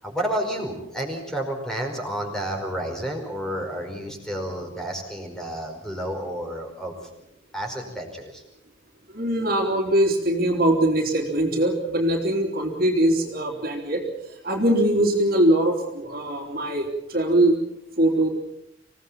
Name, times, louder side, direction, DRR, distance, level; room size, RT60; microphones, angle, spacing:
voice 1, 0.0-6.9 7.5-8.4, right 1 dB, 5° left, 2 dB, 4.9 m, -30 dB
voice 2, 9.1-14.0 14.4-17.6 18.0-18.3, right 1 dB, 50° right, 2 dB, 3.6 m, -22 dB
26.0 x 17.5 x 7.4 m, 0.81 s
head